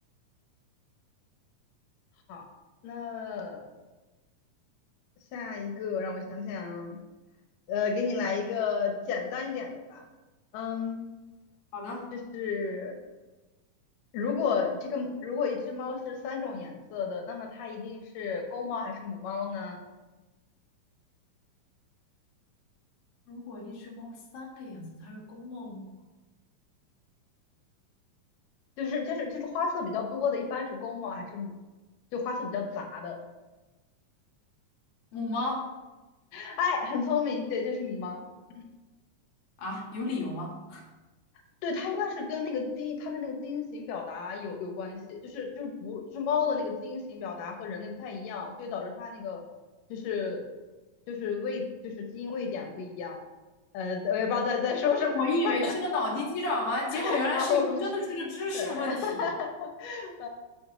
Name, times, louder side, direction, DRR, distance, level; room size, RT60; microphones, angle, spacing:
voice 1, 2.8-3.6 5.3-7.0 7.7-10.1 10.5-11.0 12.1-12.9 14.1-19.8 28.8-31.5 32.1-33.2 36.3-38.2 38.6-38.7 41.6-49.4 49.9-50.4 51.1-53.2 53.7-55.7 56.9-57.8 58.5-60.3, left 5 dB, 75° left, 3 dB, 2.6 m, -32 dB
voice 2, 11.7-12.1 23.3-25.9 35.1-35.7 39.6-40.8 55.1-59.2, left 2 dB, 50° left, -3 dB, 2.2 m, -32 dB
7.9 x 5.2 x 3.8 m, 1.1 s
omnidirectional pair, 3.9 m